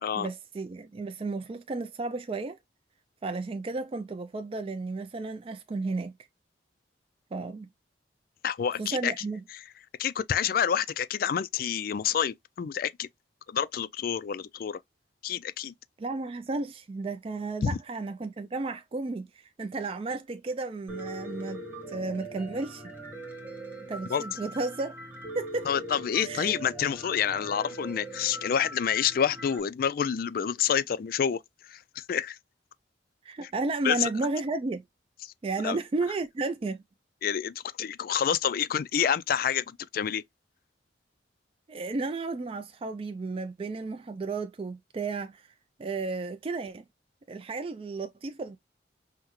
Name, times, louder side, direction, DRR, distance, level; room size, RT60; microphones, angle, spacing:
voice 1, 0.2-2.6 3.2-6.1 7.3-7.7 8.8-9.4 16.0-22.8 23.9-25.0 25.3-25.7 26.2-26.5 33.2-34.8 35.4-36.8 41.7-45.5 45.8-46.8 47.3-48.6, right 3 dB, 30° right, 0.3 m, -33 dB
voice 2, 8.4-9.1 9.5-9.6 10.0-13.1 13.5-14.8 15.2-15.7 17.6-17.8 24.1-24.2 25.7-32.4 33.8-34.1 35.2-35.3 35.6-35.8 37.2-40.2, left 8 dB, 50° left, 0.3 m, -28 dB
Piano, 20.9-29.6, right 1 dB, 10° right, 1.3 m, -41 dB
5.6 x 2.1 x 3.0 m
head